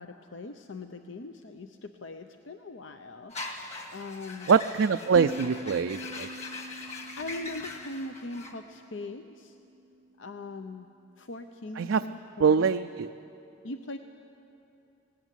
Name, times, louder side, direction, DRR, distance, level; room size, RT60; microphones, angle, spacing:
voice 1, 0.0-3.6 3.9-4.5 7.2-9.6 10.2-10.9 11.2-12.8 13.6-14.0, left 2 dB, 80° left, 7 dB, 0.7 m, -41 dB
sound 1, 3.3-8.5, left 3 dB, 35° left, 1.9 m, -41 dB
voice 2, 4.5-6.3 11.8-12.0 12.4-13.1, right 6 dB, 90° right, 8 dB, 0.4 m, -24 dB
sound 2, 5.2-10.3, right 1 dB, 20° right, 0.5 m, -44 dB
18.5 x 18.0 x 9.2 m, 2.8 s
head